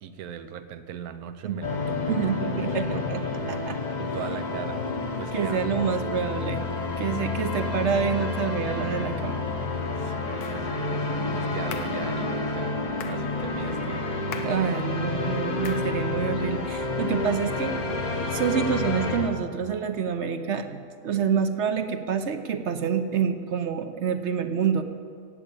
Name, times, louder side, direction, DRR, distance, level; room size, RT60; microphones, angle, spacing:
voice 1, 0.0-3.4 4.0-4.8 5.2-5.6 5.9-6.0 7.1-7.2 10.0-12.8 13.1-14.1, right 8 dB, 70° right, 11 dB, 1.2 m, -39 dB
sound 1, 1.6-19.3, left 3 dB, 35° left, 0.9 m, -30 dB
voice 2, 2.1-3.2 3.5-3.9 5.3-6.6 7.0-9.4 14.4-17.8 18.3-24.8, right 7 dB, 50° right, 8 dB, 1.0 m, -27 dB
sound 2, 5.8-19.2, left 3 dB, 90° left, 2.2 m, -38 dB
sound 3, 10.4-10.7 11.7-12.0 13.0-13.3 14.3-14.6 15.7-15.9, left 7 dB, 70° left, 1.3 m, -39 dB
16.0 x 8.5 x 8.4 m, 2.1 s
omnidirectional pair, 1.7 m